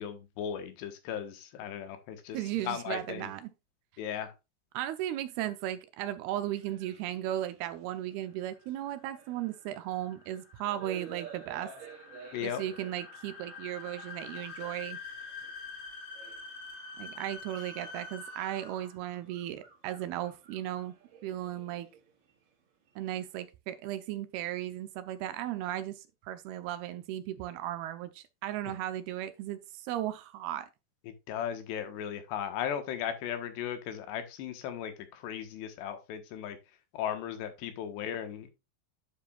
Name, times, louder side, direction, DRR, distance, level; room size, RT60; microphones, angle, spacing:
voice 1, 0.0-2.4 2.6-3.3 4.0-4.3 12.3-12.6 31.1-36.6 36.9-38.5, left 9 dB, 85° left, 3.5 m, -36 dB
voice 2, 2.3-3.5 4.7-11.7 12.4-15.0 17.0-20.9 21.2-21.9 23.0-30.7, right 12 dB, 80° right, 2.6 m, -36 dB
sound 1, 6.5-10.3 10.6-13.5 14.2-14.3 15.2-15.5 16.1-16.8 17.3-23.4, right 7 dB, 60° right, 3.2 m, -52 dB
sound 2, 8.4-19.1, left 4 dB, 50° left, 4.6 m, -46 dB
9.4 x 7.3 x 2.4 m
omnidirectional pair, 4.8 m